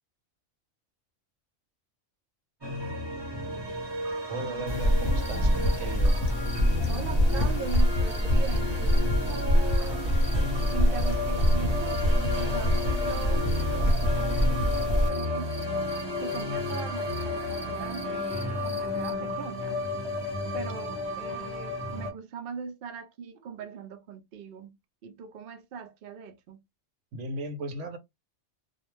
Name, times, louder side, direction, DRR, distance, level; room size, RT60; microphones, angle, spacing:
sound 1, 2.6-22.1, left 2 dB, 25° right, 0.8 m, -33 dB
voice 1, 4.3-6.3 27.1-28.0, right 2 dB, 80° right, 1.0 m, -37 dB
sound 2, 4.7-15.1, equal, 35° left, 0.8 m, -25 dB
sound 3, 5.2-19.1, right 1 dB, ahead, 0.4 m, -49 dB
voice 2, 6.9-10.1 10.7-15.5 16.2-19.9 20.2-26.6, right 6 dB, 60° right, 0.6 m, -40 dB
2.3 x 2.1 x 3.1 m
omnidirectional pair, 1.2 m